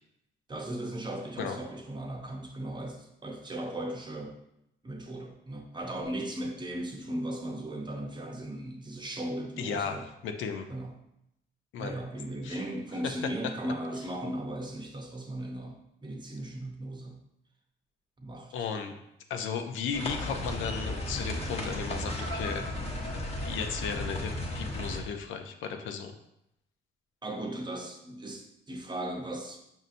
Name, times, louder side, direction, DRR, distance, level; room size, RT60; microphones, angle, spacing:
voice 1, 0.5-4.4 4.8-10.1 10.7-10.9 11.8-17.2 18.2-18.7 27.2-29.6, right 1 dB, 20° right, 2 dB, 0.6 m, -37 dB
voice 2, 9.6-10.7 11.7-11.9 12.4-12.6 13.0-13.3 18.5-18.9 19.3-22.7 23.4-26.1, left 6 dB, 80° left, 6 dB, 0.5 m, -35 dB
sound 1, 19.9-25.0, left 1 dB, 30° left, 0.8 m, -34 dB
5.4 x 2.7 x 2.5 m, 0.80 s
cardioid pair, 90°, 20 cm